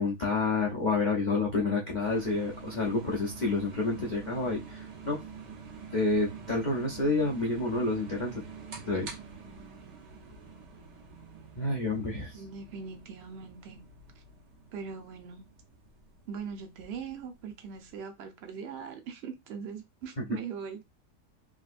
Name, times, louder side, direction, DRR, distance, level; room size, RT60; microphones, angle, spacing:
voice 1, 0.0-5.2 5.9-8.4 8.9-9.1 11.6-12.4 20.2-20.3, left 3 dB, 85° left, 0.4 m, -29 dB
sound 1, 2.0-18.0, right 5 dB, 90° right, 1.6 m, -47 dB
voice 2, 12.3-13.8 14.7-15.4 16.3-20.8, right 6 dB, 60° right, 0.6 m, -41 dB
3.6 x 2.6 x 2.5 m
omnidirectional pair, 1.8 m